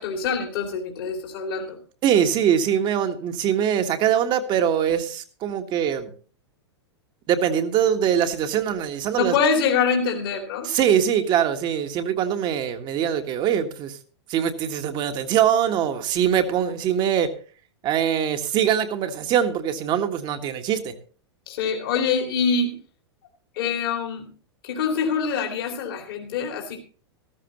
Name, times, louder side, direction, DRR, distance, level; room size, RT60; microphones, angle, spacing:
voice 1, 0.0-1.8 9.2-10.9 21.5-22.7 23.5-24.3 24.6-26.8, left 5 dB, 55° left, 3 dB, 2.8 m, -25 dB
voice 2, 2.0-6.1 7.3-9.3 10.6-14.0 14.3-17.3 17.8-21.0, right 9 dB, 35° right, 7 dB, 1.6 m, -22 dB
15.0 x 13.5 x 3.1 m, 0.40 s
figure-of-eight pair, 95°, 14 cm